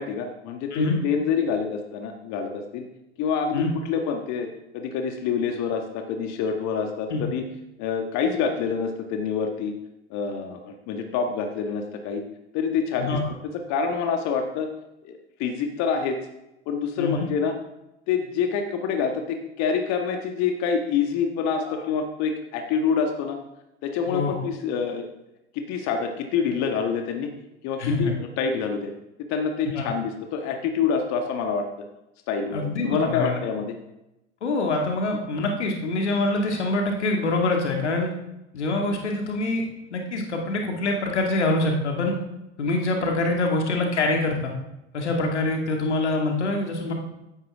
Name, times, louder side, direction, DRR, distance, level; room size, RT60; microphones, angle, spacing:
voice 1, 0.0-2.8 3.2-4.5 4.7-7.5 7.8-9.7 10.1-12.2 12.5-13.2 13.7-14.7 15.0-16.2 16.7-17.6 18.1-23.4 23.8-25.1 25.5-27.3 27.6-28.9 29.3-31.7 32.3-33.8, left 6 dB, 55° left, 4 dB, 1.6 m, -26 dB
voice 2, 24.0-24.4 27.8-28.1 29.7-29.9 32.5-33.4 34.4-38.1 38.5-39.6 39.9-42.2 42.6-44.5 44.9-46.9, left 2 dB, 85° left, 2 dB, 2.1 m, -25 dB
14.5 x 10.5 x 3.6 m, 0.91 s
hypercardioid pair, 75°, 34 cm